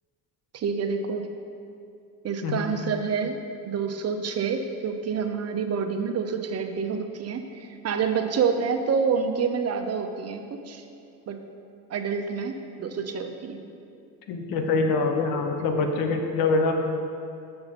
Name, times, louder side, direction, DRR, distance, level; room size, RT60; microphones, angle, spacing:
voice 1, 0.5-1.2 2.2-3.4 3.6-10.8 11.3-11.4 11.9-13.6, right 6 dB, 45° right, 6 dB, 0.7 m, -28 dB
voice 2, 14.3-16.7, left 3 dB, 85° left, 4 dB, 0.9 m, -24 dB
6.8 x 6.7 x 4.2 m, 2.5 s
cardioid pair, 85°, 35 cm